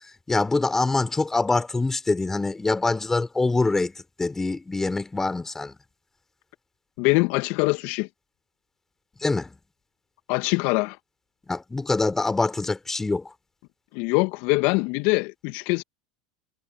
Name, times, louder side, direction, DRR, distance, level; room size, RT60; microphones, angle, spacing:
voice 1, 0.3-5.8 9.2-9.5 11.5-13.3, left 3 dB, 10° left, 4.4 m, -24 dB
voice 2, 7.0-8.1 10.3-11.0 13.9-15.8, left 26 dB, 55° left, 1.9 m, -23 dB
hypercardioid pair, 85°, 3 cm